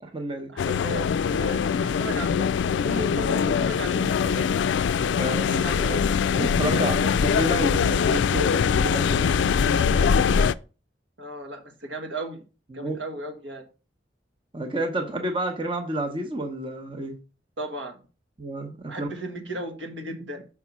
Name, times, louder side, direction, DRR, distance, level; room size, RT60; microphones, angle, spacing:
voice 1, 0.0-0.5 5.1-5.6 6.3-10.4 12.7-13.0 14.5-17.1 18.4-19.1, right 1 dB, 30° right, 0.9 m, -30 dB
voice 2, 0.5-4.6 5.1-6.1 6.7-7.0 11.2-12.4 12.7-13.7 17.6-18.0 18.9-20.5, right 1 dB, 85° right, 1.7 m, -36 dB
sound 1, 0.6-10.5, left 6 dB, 70° left, 0.3 m, -23 dB
6.0 x 4.2 x 5.8 m
head